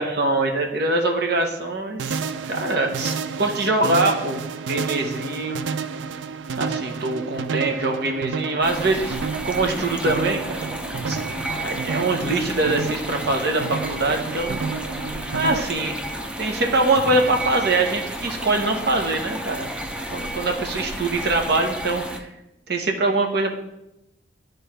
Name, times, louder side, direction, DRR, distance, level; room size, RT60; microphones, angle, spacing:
voice 1, 0.0-5.6 6.6-10.7 11.1-11.2 11.6-14.6 15.3-15.9 16.4-19.7 20.1-22.3 22.7-23.5, right 2 dB, 65° right, 2 dB, 1.2 m, -23 dB
sound 1, 2.0-15.6, right 5 dB, 85° right, 0.4 m, -31 dB
sound 2, 8.6-22.2, right 1 dB, 5° right, 0.6 m, -32 dB
12.5 x 4.4 x 3.3 m, 0.89 s
head